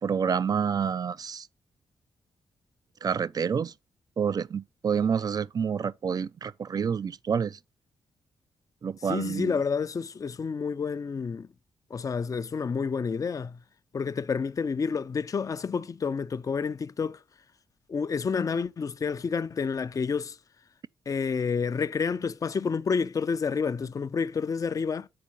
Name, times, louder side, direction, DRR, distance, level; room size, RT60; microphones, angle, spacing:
voice 1, 0.0-1.5 3.0-3.7 4.2-7.6 8.8-9.6, right 7 dB, 45° right, 0.5 m, -28 dB
voice 2, 9.1-11.5 11.9-13.6 13.9-17.2 17.9-20.4 21.1-25.1, left 5 dB, 40° left, 0.5 m, -29 dB
8.6 x 4.4 x 5.5 m
supercardioid pair, 45°, 9 cm